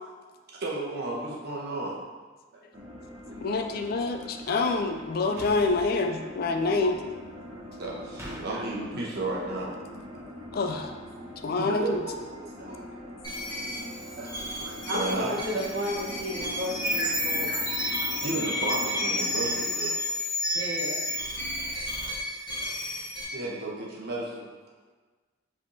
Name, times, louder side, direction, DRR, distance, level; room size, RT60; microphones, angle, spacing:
voice 1, 0.5-2.0 3.3-3.6 7.5-9.7 10.1-10.2 10.7-10.8 11.6-12.9 14.2-15.3 17.5-17.6 18.0-19.9 21.4-22.2 22.6-22.7 23.3-24.5, right 2 dB, 55° right, -4 dB, 1.0 m, -34 dB
sound 1, 2.7-19.7, left 1 dB, 35° right, 1.1 m, -43 dB
voice 2, 3.4-7.0 10.5-10.9 11.4-12.0, left 3 dB, 50° left, 5 dB, 0.3 m, -27 dB
sound 2, 5.4-5.9 8.2-8.4, equal, 15° right, 0.9 m, -42 dB
sound 3, 13.2-23.2, left 1 dB, 20° left, 1.0 m, -31 dB
voice 3, 14.8-17.5 20.5-21.0, equal, 75° right, -5 dB, 1.3 m, -33 dB
5.1 x 3.5 x 2.7 m, 1.3 s
head